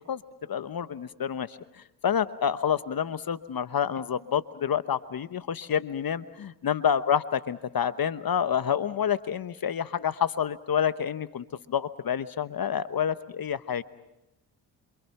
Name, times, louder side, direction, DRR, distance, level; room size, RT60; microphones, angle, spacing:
voice 1, 0.5-1.6 2.0-13.8, left 8 dB, 45° left, 13 dB, 1.1 m, -28 dB
27.0 x 27.0 x 5.9 m, 0.92 s
supercardioid pair, 50°, 49 cm